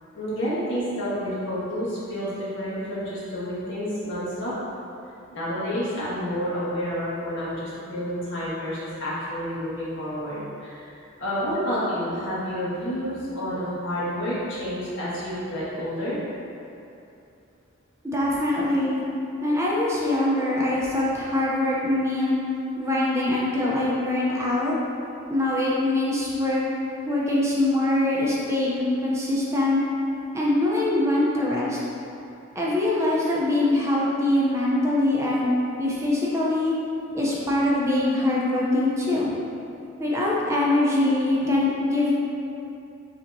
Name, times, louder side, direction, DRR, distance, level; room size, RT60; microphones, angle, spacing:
voice 1, 0.1-4.5 5.3-10.9 11.2-16.2 35.7-35.8 38.3-38.4 41.3-41.6, equal, 65° left, -10 dB, 1.5 m, -29 dB
voice 2, 18.0-19.0 19.4-22.3 22.8-24.8 25.3-26.6 27.1-29.8 30.3-31.8 32.6-35.5 35.8-36.7 37.1-39.3 40.0-42.1, left 1 dB, 15° right, -5 dB, 0.5 m, -23 dB
7.0 x 2.8 x 2.6 m, 2.7 s
head